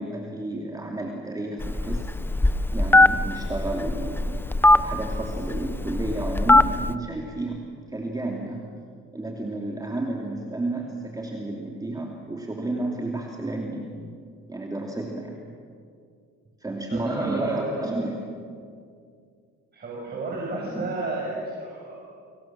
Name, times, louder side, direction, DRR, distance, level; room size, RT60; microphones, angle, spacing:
voice 1, 0.0-2.0 2.7-4.4 4.7-8.7 9.1-13.9 14.5-15.4 16.6-18.2 20.1-20.2 20.5-20.9 21.3-21.4, right 2 dB, 10° right, 0 dB, 2.9 m, -31 dB
Telephone, 1.6-6.9, left 2 dB, 5° left, 0.7 m, -21 dB
voice 2, 16.9-17.9 19.7-21.4 21.7-22.0, right 2 dB, 35° right, -3 dB, 6.5 m, -32 dB
30.0 x 25.0 x 7.6 m, 2.3 s
cardioid pair, 120°, 29 cm